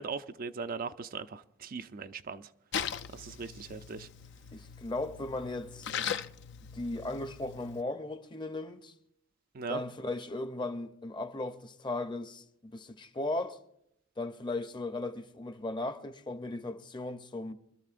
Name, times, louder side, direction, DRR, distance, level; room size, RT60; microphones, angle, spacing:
voice 1, 0.0-2.5 3.1-4.1 9.5-9.8, right 5 dB, 45° right, 0.4 m, -39 dB
Splash splatter, 2.7-7.8, left 7 dB, 60° left, 0.5 m, -39 dB
voice 2, 4.5-5.9 6.7-8.9 9.7-13.6 14.2-17.5, left 2 dB, 25° left, 0.7 m, -37 dB
25.0 x 13.0 x 2.5 m
head